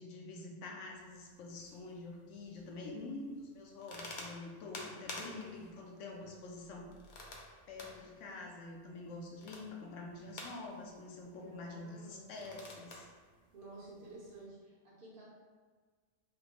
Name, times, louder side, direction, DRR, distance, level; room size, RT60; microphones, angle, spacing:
voice 1, 0.0-6.9 7.7-13.1, left 2 dB, 85° left, 0 dB, 1.0 m, -47 dB
sound 1, 0.9-14.5, left 2 dB, 55° left, 0.6 m, -53 dB
voice 2, 11.3-12.2 13.5-15.3, right 2 dB, 55° right, -8 dB, 0.9 m, -52 dB
3.5 x 2.5 x 2.9 m, 1.5 s
omnidirectional pair, 1.2 m